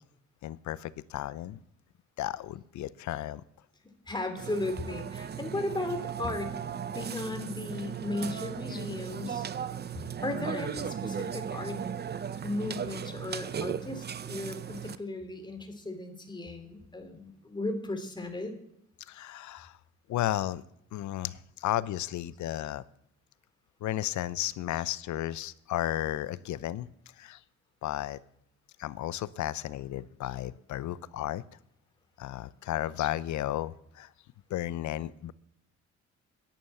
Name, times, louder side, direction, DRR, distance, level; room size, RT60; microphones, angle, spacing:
voice 1, 0.4-1.6 2.2-3.4 19.1-19.7 20.1-20.6 20.9-22.8 23.8-26.9 27.2-27.4 27.8-28.2 28.8-31.4 32.2-34.1 34.5-35.3, left 13 dB, 70° left, 18 dB, 0.7 m, -33 dB
voice 2, 4.1-9.5 10.2-11.9 12.4-18.6, left 2 dB, 15° left, 6 dB, 2.7 m, -36 dB
Burping eructation, 4.4-15.0, right 8 dB, 35° right, 0.6 m, -37 dB
10.5 x 10.5 x 7.9 m, 0.77 s
cardioid pair, 90°, 30 cm